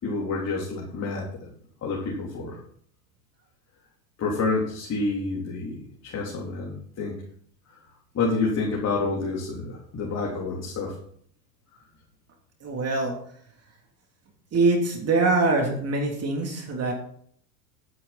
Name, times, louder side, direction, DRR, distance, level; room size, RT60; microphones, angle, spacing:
voice 1, 0.0-1.3 1.8-2.6 4.2-7.2 8.1-11.0, left 3 dB, 30° left, -4 dB, 3.7 m, -28 dB
voice 2, 12.6-13.1 14.5-16.9, right 3 dB, 30° right, 2 dB, 3.1 m, -23 dB
12.5 x 9.7 x 4.3 m, 0.62 s
hypercardioid pair, 105°, 49 cm